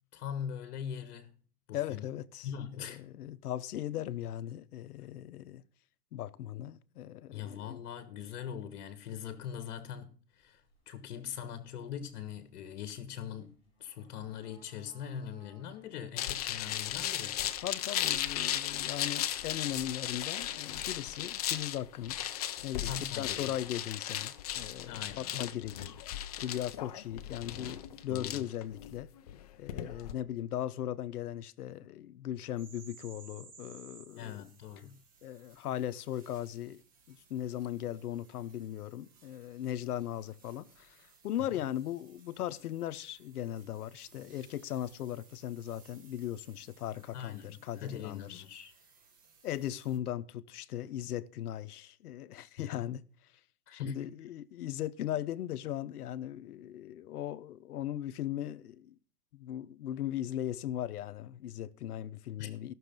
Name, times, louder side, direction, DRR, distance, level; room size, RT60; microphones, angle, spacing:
voice 1, 0.1-1.3 1.7-2.0 2.4-3.0 7.3-17.4 22.9-23.5 24.9-25.3 28.1-28.4 34.1-35.0 41.5-41.6 47.1-48.7 52.6-52.9 53.7-54.1 62.4-62.5, left 8 dB, 50° left, 1.4 m, -42 dB
voice 2, 1.7-2.5 2.8-5.6 6.1-7.8 17.6-22.2 22.6-26.0 26.4-29.1 29.6-34.5 35.2-36.8 37.1-48.4 49.4-53.0 53.7-59.0 59.3-62.7, left 12 dB, 70° left, 0.8 m, -38 dB
sound 1, 10.3-20.8, left 1 dB, 10° left, 6.8 m, -67 dB
sound 2, 16.2-30.1, left 12 dB, 25° left, 0.4 m, -36 dB
sound 3, 32.6-50.0, right 5 dB, 20° right, 1.2 m, -60 dB
15.0 x 6.5 x 5.2 m
hypercardioid pair, 145°, 46 cm